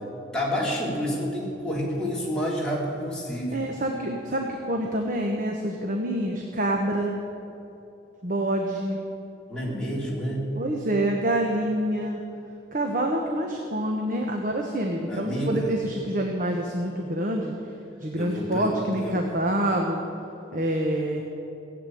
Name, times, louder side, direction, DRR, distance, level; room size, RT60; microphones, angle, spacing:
voice 1, 0.3-3.6 9.5-10.5 15.1-15.7 18.1-18.7 19.0-19.2, equal, 5° left, -6 dB, 3.4 m, -29 dB
voice 2, 3.5-7.2 8.2-9.0 10.6-12.2 12.7-17.5 18.0-20.0 20.5-21.2, right 1 dB, 45° right, 1 dB, 1.2 m, -26 dB
16.5 x 8.3 x 9.3 m, 2.8 s
head